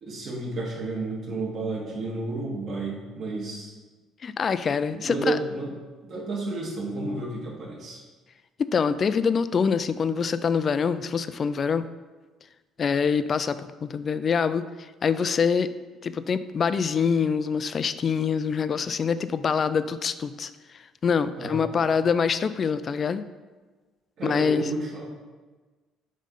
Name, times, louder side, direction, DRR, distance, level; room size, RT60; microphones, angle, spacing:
voice 1, 0.0-3.7 4.6-5.7 6.1-8.0 21.4-21.9 24.2-25.1, right 2 dB, 45° right, -4 dB, 2.0 m, -31 dB
voice 2, 4.2-5.4 8.6-11.9 12.8-14.6 15.0-15.7 16.0-20.5 21.0-23.2 24.2-24.7, left 6 dB, 35° left, 13 dB, 0.3 m, -25 dB
7.6 x 3.2 x 5.4 m, 1.3 s
cardioid pair, 125°, 0 cm